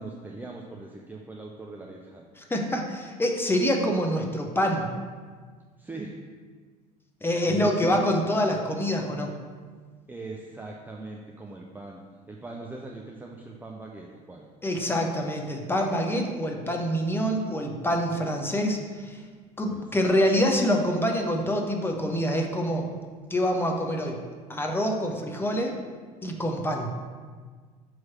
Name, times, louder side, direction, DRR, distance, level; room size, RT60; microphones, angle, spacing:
voice 1, 0.0-2.3 5.8-6.2 7.5-8.0 10.1-14.5 19.6-20.2, right 3 dB, 10° right, -1 dB, 0.5 m, -40 dB
voice 2, 2.4-4.9 7.2-9.3 14.6-19.2 19.6-22.9 23.3-24.2 24.5-25.7 26.2-26.9, equal, 10° left, 2 dB, 0.9 m, -26 dB
5.9 x 3.2 x 5.7 m, 1.5 s
figure-of-eight pair, 65°, 20 cm